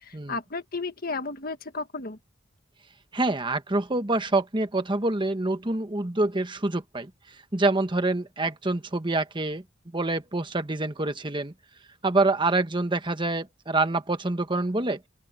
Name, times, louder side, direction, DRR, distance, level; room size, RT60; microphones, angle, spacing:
voice 1, 0.0-2.2, left 3 dB, 50° left, 1.6 m, -33 dB
voice 2, 3.1-7.1 7.5-9.6 9.9-11.5 12.0-15.0, right 2 dB, 25° right, 1.3 m, -26 dB
open air
head